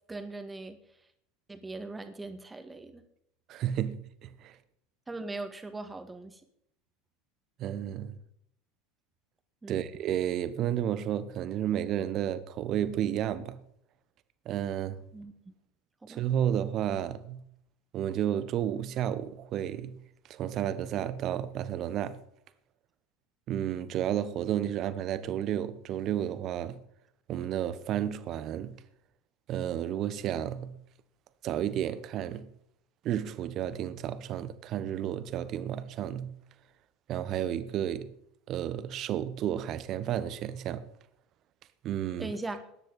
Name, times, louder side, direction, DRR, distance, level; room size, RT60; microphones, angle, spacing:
voice 1, 0.1-0.8 1.5-3.0 5.1-6.4 9.6-9.8 15.1-15.5 16.0-16.2 42.2-42.6, right 2 dB, 15° right, 2.0 m, -40 dB
voice 2, 3.5-4.6 7.6-8.1 9.7-13.6 14.4-15.0 16.1-17.5 17.9-20.0 20.3-22.2 23.5-26.8 27.3-28.8 29.5-30.8 31.4-32.5 33.0-36.4 37.1-38.1 38.5-40.9 41.8-42.3, right 10 dB, 45° right, 1.1 m, -32 dB
19.5 x 10.5 x 4.2 m
figure-of-eight pair, 75°, 0 cm